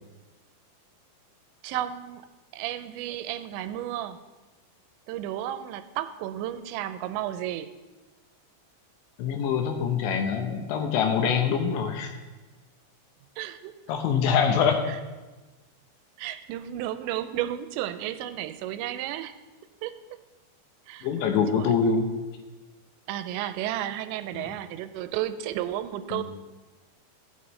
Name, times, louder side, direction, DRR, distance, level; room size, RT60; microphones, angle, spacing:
voice 1, 1.6-2.3 2.5-4.2 5.1-7.7 13.4-13.7 14.9-15.0 16.2-19.3 19.8-19.9 20.9-21.1 21.5-21.7 23.1-26.2, right 12 dB, 90° right, 12 dB, 2.9 m, -32 dB
voice 2, 9.2-12.1 13.9-14.9 21.0-22.1 24.4-24.5 26.1-26.2, left 6 dB, 85° left, 5 dB, 3.4 m, -24 dB
16.0 x 9.0 x 3.2 m, 1.2 s
omnidirectional pair, 5.1 m